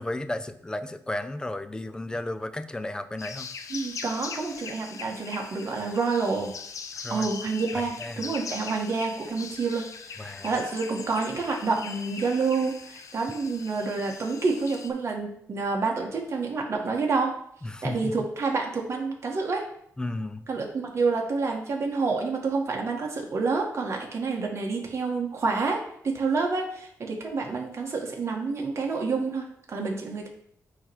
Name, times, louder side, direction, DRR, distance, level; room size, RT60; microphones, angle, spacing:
voice 1, 0.0-3.5 7.0-7.3 7.7-8.3 10.2-10.5 17.6-18.3 20.0-20.4, left 1 dB, 15° left, 11 dB, 0.5 m, -34 dB
sound 1, 3.2-14.9, left 5 dB, 60° left, 0.6 m, -41 dB
voice 2, 3.7-6.5 7.1-9.8 10.1-17.3 17.8-19.6 20.5-25.8 26.0-30.3, right 4 dB, 50° right, 0 dB, 1.6 m, -28 dB
8.9 x 3.2 x 4.7 m, 0.70 s
cardioid pair, 105°, 6 cm